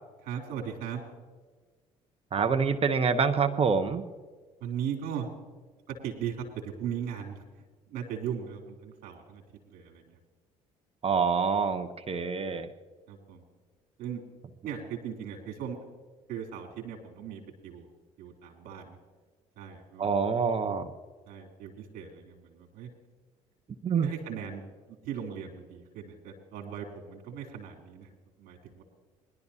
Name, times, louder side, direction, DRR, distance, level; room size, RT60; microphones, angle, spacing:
voice 1, 0.2-1.0 4.6-5.3 5.9-10.2 13.1-13.4 14.0-14.2 14.6-15.8 16.3-17.9 18.2-19.0 19.5-20.1 21.3-22.9 24.0-28.1 28.4-28.8, right 8 dB, 70° right, 1 dB, 3.1 m, -38 dB
voice 2, 2.3-4.1 11.0-12.7 20.0-20.9 23.8-24.1, right 5 dB, 40° right, 9 dB, 0.9 m, -26 dB
21.0 x 12.0 x 2.8 m, 1.4 s
hypercardioid pair, 65°, 16 cm